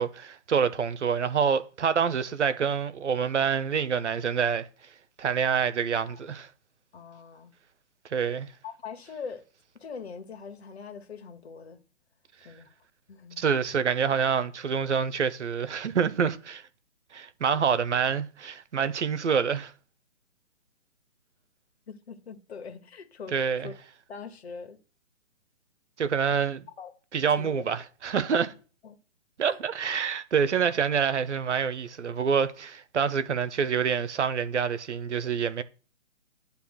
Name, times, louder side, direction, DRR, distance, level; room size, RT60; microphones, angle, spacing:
voice 1, 0.0-4.7 5.2-6.5 8.1-8.5 13.4-16.6 17.1-19.7 23.3-23.7 26.0-26.6 27.1-28.5 29.4-35.6, right 6 dB, 70° right, 1.2 m, -26 dB
voice 2, 6.9-7.5 8.6-9.4 9.8-11.8 12.4-12.7 13.1-13.5 21.9-23.7 24.1-24.8 26.8-26.9 27.3-27.7 28.8-29.0 29.4-29.6, left 5 dB, 60° left, 1.8 m, -42 dB
9.7 x 3.4 x 6.4 m
hypercardioid pair, 145°, 37 cm